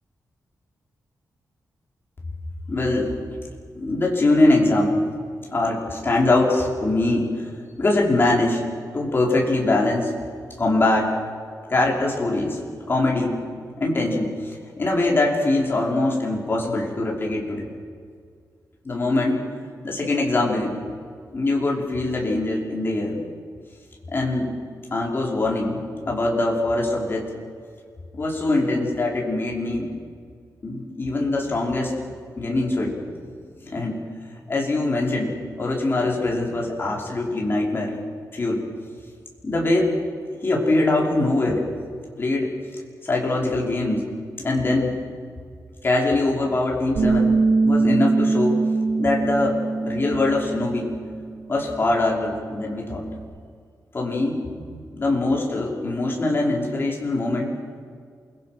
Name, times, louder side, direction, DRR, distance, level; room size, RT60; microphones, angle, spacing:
voice 1, 2.7-3.2 3.7-5.0 5.5-7.5 7.8-8.6 8.9-10.1 10.6-11.1 11.7-12.6 12.9-13.3 13.8-17.7 18.8-19.4 19.8-20.8 21.3-23.2 24.1-24.5 24.9-27.3 28.1-29.9 30.6-31.9 32.4-33.0 33.6-34.0 34.5-37.9 38.3-38.6 39.4-39.9 40.4-41.6 42.2-42.5 43.0-44.0 44.4-45.0 45.8-47.4 47.6-48.6 49.0-50.9 51.5-53.0 53.9-57.5, left 2 dB, 35° left, -2 dB, 5.4 m, -22 dB
Bass guitar, 47.0-51.3 51.6-53.2, right 3 dB, 80° right, 6.2 m, -23 dB
28.0 x 22.0 x 6.1 m, 2.1 s
wide cardioid pair, 130°, 7 cm